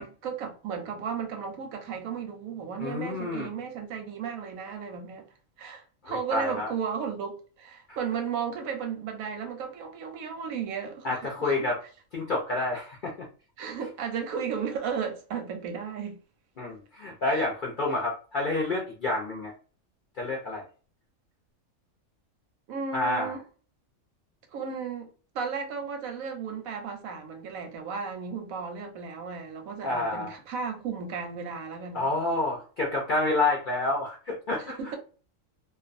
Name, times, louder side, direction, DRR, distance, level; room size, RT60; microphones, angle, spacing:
voice 1, 0.0-5.2 5.6-11.7 13.6-16.2 17.3-17.5 22.7-23.4 24.5-32.1 34.6-35.0, right 6 dB, 85° right, 1.1 m, -34 dB
voice 2, 2.8-3.5 6.0-6.7 11.0-11.8 12.1-13.1 16.6-19.5 20.2-20.6 22.9-23.3 29.8-30.3 31.9-34.8, left 2 dB, 55° left, 0.5 m, -28 dB
2.5 x 2.2 x 2.4 m
omnidirectional pair, 1.4 m